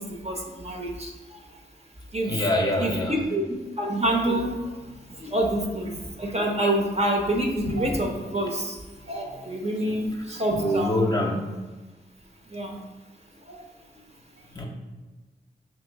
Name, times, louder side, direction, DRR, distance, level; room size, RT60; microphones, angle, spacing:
voice 1, 0.0-1.4 2.1-2.5 2.8-11.0 12.5-12.8 13.4-13.6, right 1 dB, 35° right, 1 dB, 0.8 m, -27 dB
voice 2, 2.3-3.1 10.6-11.5 14.6-14.7, left 1 dB, 20° left, 1 dB, 0.7 m, -24 dB
3.1 x 3.0 x 4.5 m, 1.2 s
cardioid pair, 45°, 18 cm